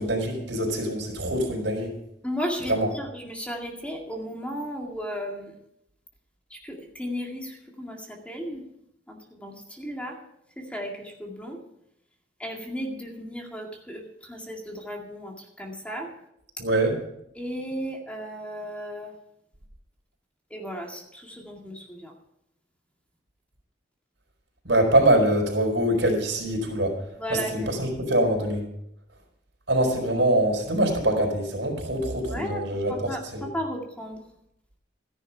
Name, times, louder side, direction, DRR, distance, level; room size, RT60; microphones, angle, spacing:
voice 1, 0.0-1.9 2.7-2.9 16.6-17.0 24.6-26.9 27.3-28.6 29.7-33.5, right 1 dB, 90° right, 1 dB, 4.5 m, -24 dB
voice 2, 2.2-5.6 6.5-8.6 9.1-10.2 10.6-11.6 12.4-16.1 17.3-19.1 20.5-22.1 27.2-27.8 32.3-32.6 32.9-34.2, equal, 5° left, 1 dB, 2.1 m, -35 dB
13.5 x 11.0 x 5.5 m, 0.78 s
head